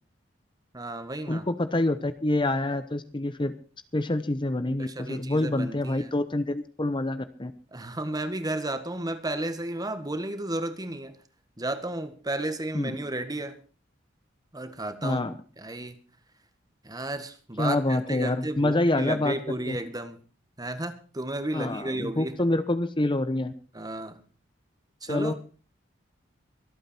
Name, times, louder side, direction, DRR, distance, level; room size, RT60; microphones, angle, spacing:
voice 1, 0.7-1.5 4.8-6.1 7.7-11.2 11.6-13.6 14.5-15.2 15.6-16.0 16.8-20.2 20.6-22.4 23.7-24.2 25.0-25.3, right 1 dB, 20° right, 10 dB, 1.7 m, -33 dB
voice 2, 1.3-3.5 3.9-7.5 12.7-13.0 15.0-15.4 17.6-19.3 19.7-19.8 21.5-23.5 25.1-25.3, left 2 dB, 25° left, 11 dB, 0.9 m, -26 dB
24.0 x 8.8 x 4.5 m, 0.38 s
head